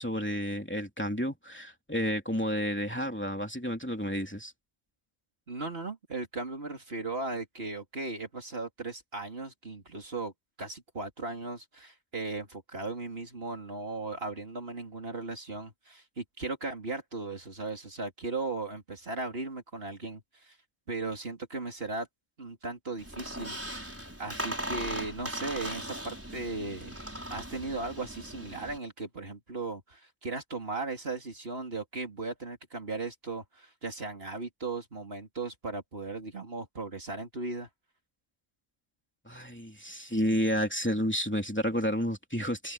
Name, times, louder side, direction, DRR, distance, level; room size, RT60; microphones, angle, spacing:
voice 1, 0.0-4.5 39.3-42.7, equal, 10° left, 3.0 m, -31 dB
voice 2, 5.5-10.3 10.6-20.6 20.9-22.1 22.4-23.6 24.2-27.0 27.3-37.7, right 3 dB, 70° right, 3.4 m, -37 dB
Squeak, 23.0-28.8, right 1 dB, 15° right, 5.4 m, -39 dB
open air
omnidirectional pair, 1.1 m